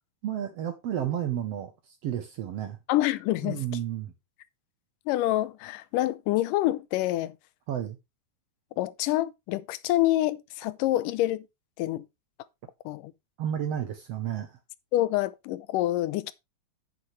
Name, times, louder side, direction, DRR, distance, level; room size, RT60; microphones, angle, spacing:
voice 1, 0.2-2.8 3.4-4.1 7.7-8.0 13.4-14.6, right 10 dB, 65° right, 1.6 m, -32 dB
voice 2, 2.9-3.6 5.1-7.4 8.8-11.5 11.8-12.1 12.9-13.1 14.9-16.3, left 15 dB, 80° left, 2.2 m, -27 dB
8.9 x 8.8 x 3.2 m
omnidirectional pair, 3.8 m